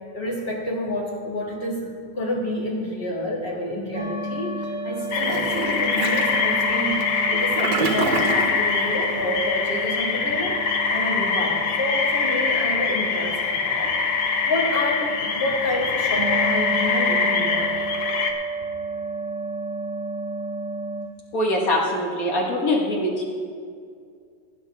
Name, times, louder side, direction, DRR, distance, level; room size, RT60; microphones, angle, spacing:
voice 1, 0.1-10.6 10.9-13.9 14.4-17.7, left 1 dB, 35° left, -3 dB, 2.1 m, -28 dB
sound 1, 3.9-21.1, right 2 dB, 35° right, 0.8 m, -32 dB
sound 2, 5.1-18.3, left 5 dB, 80° left, 1.6 m, -24 dB
Toilet flush, 5.1-8.6, right 4 dB, 90° right, 1.7 m, -28 dB
voice 2, 21.3-23.2, left 1 dB, 55° left, -1 dB, 2.0 m, -23 dB
18.0 x 9.5 x 3.6 m, 2.2 s
omnidirectional pair, 1.8 m